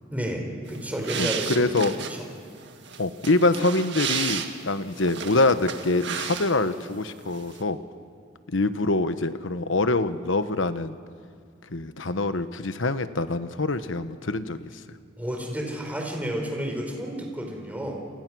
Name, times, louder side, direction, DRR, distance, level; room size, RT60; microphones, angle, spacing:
voice 1, 0.1-1.5 15.2-18.0, equal, 10° right, 1 dB, 4.5 m, -31 dB
sound 1, 0.7-6.9 7.1-7.6, right 7 dB, 65° right, 1.8 m, -33 dB
voice 2, 1.2-1.9 3.0-7.8 8.5-11.0 11.7-14.6, left 2 dB, 75° left, 11 dB, 1.2 m, -25 dB
29.0 x 27.5 x 6.3 m, 2.2 s
head